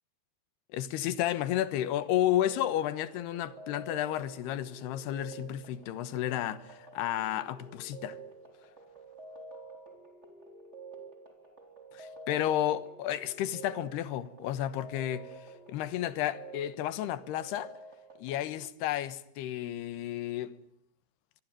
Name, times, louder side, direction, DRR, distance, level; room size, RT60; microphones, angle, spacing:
voice 1, 0.7-8.2 11.9-15.3 15.7-17.7 18.2-20.5, left 12 dB, 75° left, 3.2 m, -32 dB
sound 1, 2.3-18.7, right 3 dB, 15° right, 3.6 m, -49 dB
25.5 x 23.0 x 9.0 m
omnidirectional pair, 4.9 m